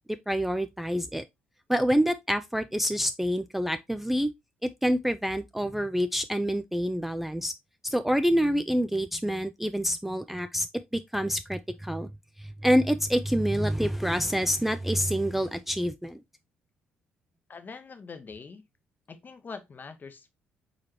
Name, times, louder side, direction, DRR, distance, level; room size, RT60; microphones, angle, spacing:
voice 1, 0.3-1.2 1.7-4.3 4.6-7.5 7.8-10.7 10.9-12.1 12.4-16.2, equal, 5° right, 0.3 m, -27 dB
voice 2, 17.5-18.6 19.1-20.3, left 5 dB, 35° left, 0.8 m, -43 dB
4.2 x 3.9 x 3.1 m
figure-of-eight pair, 45°, 6 cm